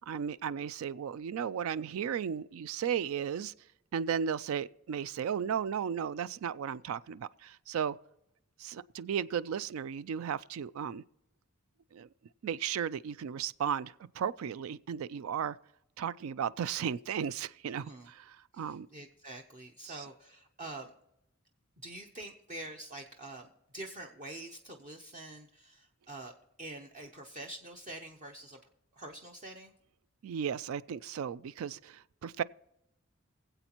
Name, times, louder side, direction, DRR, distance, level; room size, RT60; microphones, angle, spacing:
voice 1, 0.0-3.5 3.9-8.0 8.6-11.0 11.9-12.1 12.4-15.6 16.0-18.9 19.8-20.0 30.2-32.4, right 8 dB, 80° right, 0.3 m, -35 dB
voice 2, 17.8-18.1 18.5-20.9 21.8-26.3 26.6-28.6 28.9-29.7, right 2 dB, 40° right, 0.7 m, -46 dB
24.0 x 7.9 x 2.9 m
head